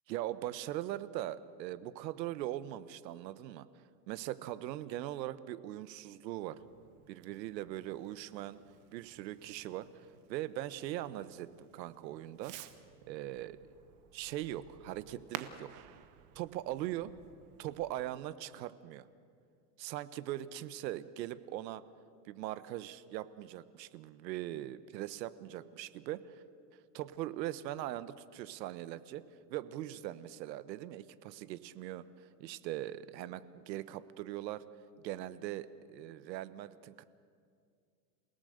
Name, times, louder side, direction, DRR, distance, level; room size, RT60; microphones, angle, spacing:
voice 1, 0.1-3.7 4.1-6.6 7.1-8.6 8.9-12.5 13.1-13.6 14.1-15.7 16.3-17.1 17.6-19.1 19.8-21.8 22.2-26.4 26.9-29.2 29.5-34.6 35.0-37.0, right 14 dB, 90° right, 15 dB, 1.2 m, -41 dB
Fireworks, 6.5-17.9, right 11 dB, 40° right, 1.2 m, -53 dB
28.5 x 18.0 x 6.6 m, 2.2 s
supercardioid pair, 160°, 50 cm